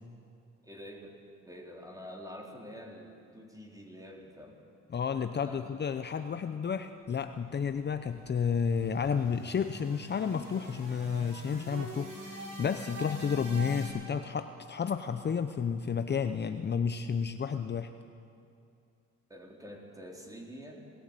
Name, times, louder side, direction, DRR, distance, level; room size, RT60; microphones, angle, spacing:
voice 1, 0.6-4.6 5.4-5.7 19.3-20.9, equal, 10° right, 0 dB, 4.0 m, -47 dB
voice 2, 4.9-17.9, left 6 dB, 35° left, 9 dB, 0.8 m, -31 dB
sound 1, 7.5-13.9, equal, 90° right, 6.2 m, -44 dB
20.0 x 16.0 x 9.0 m, 2.5 s
cardioid pair, 90°, 30 cm